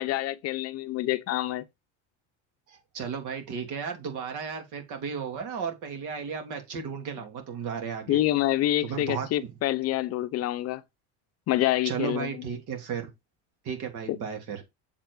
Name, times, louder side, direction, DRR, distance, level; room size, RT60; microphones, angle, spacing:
voice 1, 0.0-1.6 8.1-10.8 11.5-12.3 14.1-14.2, left 14 dB, 45° left, 0.6 m, -27 dB
voice 2, 2.7-8.2 8.8-9.5 11.8-13.1 13.6-14.6, right 6 dB, 60° right, 3.1 m, -34 dB
7.4 x 4.7 x 4.7 m
cardioid pair, 135°, 34 cm